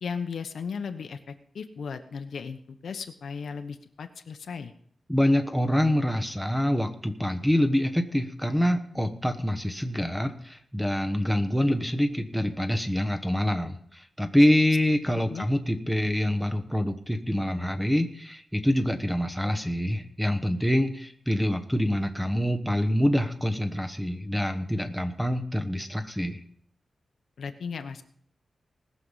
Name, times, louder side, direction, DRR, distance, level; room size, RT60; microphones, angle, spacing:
voice 1, 0.0-4.7 15.3-15.5 27.4-28.0, left 6 dB, 75° left, 7 dB, 1.0 m, -36 dB
voice 2, 5.1-26.4, equal, ahead, 7 dB, 1.1 m, -26 dB
19.5 x 6.7 x 5.6 m, 0.63 s
wide cardioid pair, 140°, 0 cm